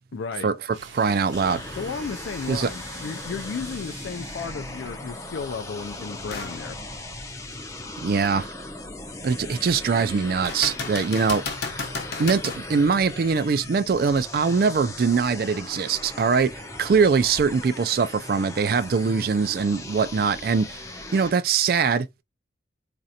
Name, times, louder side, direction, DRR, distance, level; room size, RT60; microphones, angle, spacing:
voice 1, 0.1-0.5 1.8-6.8, left 5 dB, 75° left, 0.3 m, -34 dB
sound 1, 0.7-4.7, right 5 dB, 90° right, 0.9 m, -45 dB
voice 2, 0.9-1.6 2.5-2.7 8.0-8.5 9.2-11.4 11.7-11.9 12.2-20.8 21.1-22.2, right 5 dB, 50° right, 0.3 m, -22 dB
sound 2, 1.3-21.3, left 2 dB, 15° left, 0.5 m, -38 dB
sound 3, 6.3-6.6 7.2-7.3 10.4-12.7 16.3-16.4, left 4 dB, 55° left, 0.7 m, -33 dB
4.2 x 2.5 x 2.7 m
head